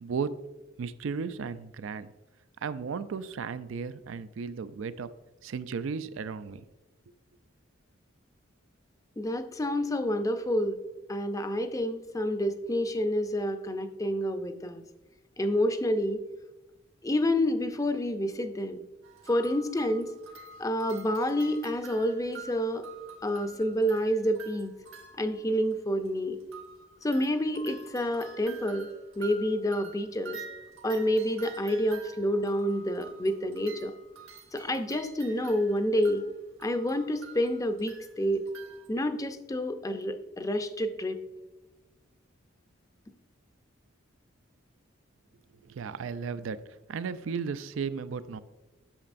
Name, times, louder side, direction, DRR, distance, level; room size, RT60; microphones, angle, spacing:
voice 1, 0.0-0.4 0.8-2.1 2.6-5.1 5.4-6.6 45.6-46.6 46.9-48.4, right 5 dB, 75° right, 14 dB, 0.4 m, -35 dB
voice 2, 9.2-10.8 11.1-14.8 15.4-16.2 17.0-18.8 19.3-20.1 20.6-22.8 23.2-24.8 25.2-26.4 27.0-28.9 29.2-30.4 30.8-33.9 34.5-36.3 36.6-38.4 38.9-41.2, equal, 15° left, 8 dB, 0.5 m, -28 dB
sound 1, 19.0-25.4 25.7-25.8 26.1-26.2 26.4-38.9, right 4 dB, 90° right, 1.4 m, -48 dB
8.7 x 6.6 x 2.5 m, 1.1 s
head